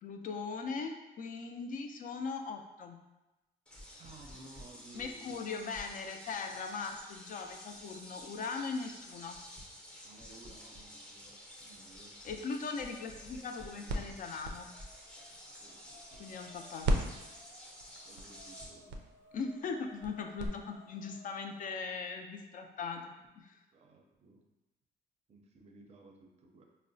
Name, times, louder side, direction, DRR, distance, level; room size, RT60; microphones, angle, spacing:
voice 1, 0.0-3.0 4.9-9.4 12.2-14.7 16.2-17.1 19.3-23.6, left 4 dB, 50° left, 5 dB, 0.4 m, -40 dB
sound 1, 3.7-18.7, left 1 dB, 5° left, 0.6 m, -51 dB
voice 2, 4.0-5.4 10.0-12.2 15.6-16.3 18.0-19.0 20.9-21.0 23.7-24.5 25.3-26.6, right 2 dB, 35° right, 2 dB, 0.5 m, -57 dB
sound 2, 11.1-11.7 12.0-13.9 14.6-21.8, left 1 dB, 70° left, 0.8 m, -61 dB
sound 3, 12.9-16.5 16.8-20.5, right 1 dB, 90° right, 0.4 m, -38 dB
4.5 x 2.1 x 2.6 m, 1.0 s
cardioid pair, 125°, 18 cm